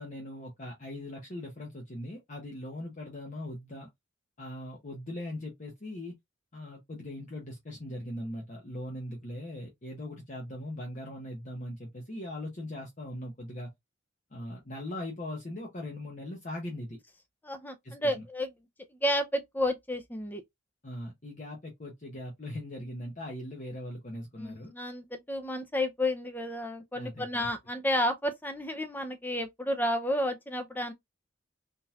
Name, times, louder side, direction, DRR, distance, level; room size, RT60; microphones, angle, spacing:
voice 1, 0.0-3.9 4.4-6.1 6.5-13.7 14.3-17.0 17.8-18.2 20.8-24.7 26.9-27.5, left 1 dB, 40° left, 0.8 m, -40 dB
voice 2, 17.4-18.5 18.9-20.4 24.4-30.9, left 1 dB, 10° left, 0.5 m, -31 dB
3.7 x 2.8 x 2.4 m
head